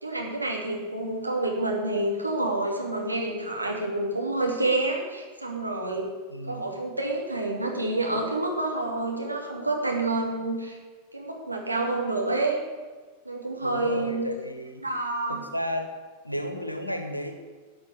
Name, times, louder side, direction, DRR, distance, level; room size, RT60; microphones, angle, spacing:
voice 1, 0.0-6.1 6.4-10.8 11.1-12.6 13.2-14.3 14.8-15.4, right 2 dB, 85° right, -1 dB, 2.5 m, -28 dB
voice 2, 6.3-6.6 13.6-14.8 15.3-15.9 16.2-17.3, equal, 90° left, 6 dB, 1.4 m, -32 dB
12.0 x 6.0 x 9.0 m, 1.4 s
figure-of-eight pair, 90°, 0 cm